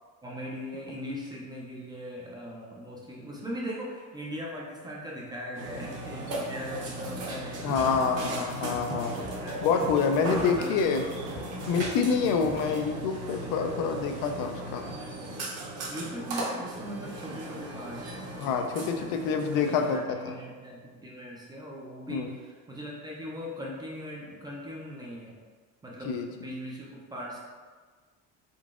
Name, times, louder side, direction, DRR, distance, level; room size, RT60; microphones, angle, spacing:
voice 1, 0.2-8.5 9.2-9.6 10.2-10.8 15.9-19.2 19.6-25.4 25.8-27.4, equal, 15° right, -3 dB, 0.4 m, -40 dB
Burping eructation, 5.5-20.0, right 1 dB, 45° right, 0.8 m, -37 dB
voice 2, 7.6-9.2 9.6-11.0 11.7-14.9 18.4-20.0 20.2-20.3 22.1-22.3 26.0-26.3, left 5 dB, 75° left, 5 dB, 0.5 m, -27 dB
sound 1, 7.7-12.8, right 3 dB, 75° right, 1.0 m, -42 dB
3.8 x 3.6 x 2.4 m, 1.5 s
cardioid pair, 160°, 34 cm